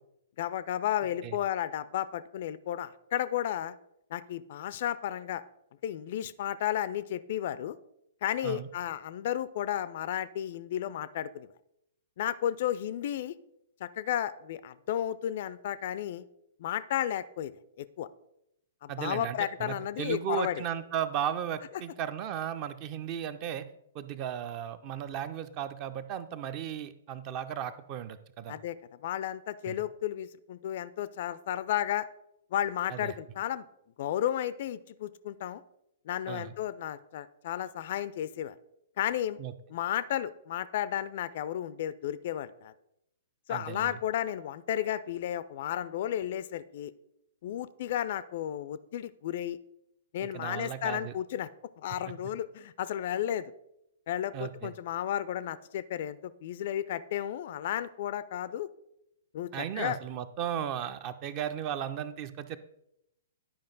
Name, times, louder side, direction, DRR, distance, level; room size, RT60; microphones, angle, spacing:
voice 1, 0.4-3.7 4.1-5.4 5.8-7.8 8.2-11.5 12.2-13.4 13.8-16.2 16.6-17.5 17.8-18.1 18.8-20.6 28.5-28.8 29.0-32.1 32.5-33.6 34.0-35.6 36.1-38.5 39.0-39.4 39.7-42.7 43.5-46.9 47.4-49.6 50.1-51.5 51.8-53.5 54.1-58.7 59.3-60.0, left 11 dB, 50° left, 16 dB, 0.3 m, -33 dB
voice 2, 18.9-23.7 23.9-28.6 29.7-29.8 32.9-33.2 36.3-36.5 39.4-39.5 43.5-44.0 50.2-51.1 54.3-54.7 59.5-62.6, right 9 dB, 35° right, 13 dB, 0.5 m, -35 dB
10.5 x 5.0 x 3.9 m, 0.81 s
figure-of-eight pair, 115°, 0 cm